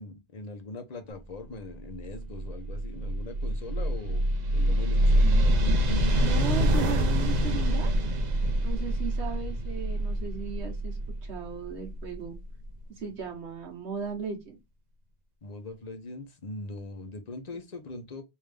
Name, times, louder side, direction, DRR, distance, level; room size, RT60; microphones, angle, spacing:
voice 1, 0.0-5.5 15.4-18.2, left 2 dB, 40° left, 0.8 m, -41 dB
sound 1, 1.9-12.6, equal, 50° right, 0.6 m, -26 dB
voice 2, 5.2-5.8 6.2-7.9 8.6-12.4 13.0-14.6, right 6 dB, 75° right, 1.3 m, -37 dB
3.5 x 2.7 x 3.2 m
omnidirectional pair, 1.1 m